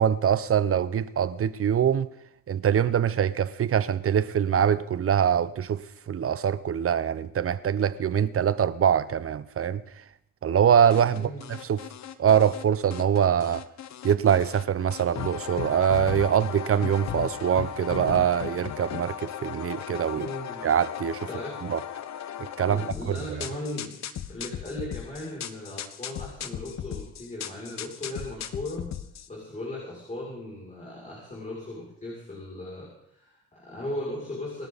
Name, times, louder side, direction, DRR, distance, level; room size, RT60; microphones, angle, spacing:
voice 1, 0.0-2.1 2.5-9.8 10.4-11.3 11.6-11.8 12.2-13.6 14.0-20.3 20.6-21.3 21.6-21.8 22.6-23.2, right 8 dB, 50° right, 0.9 m, -24 dB
sound 1, 10.9-12.6 12.9-14.6 14.9-29.3, left 10 dB, 65° left, 1.3 m, -36 dB
voice 2, 11.1-11.4 20.1-20.7 21.3-21.6 22.6-23.9 24.3-28.9 29.3-34.7, left 1 dB, 25° left, 6.8 m, -37 dB
27.0 x 12.5 x 4.2 m
cardioid pair, 90°, 30 cm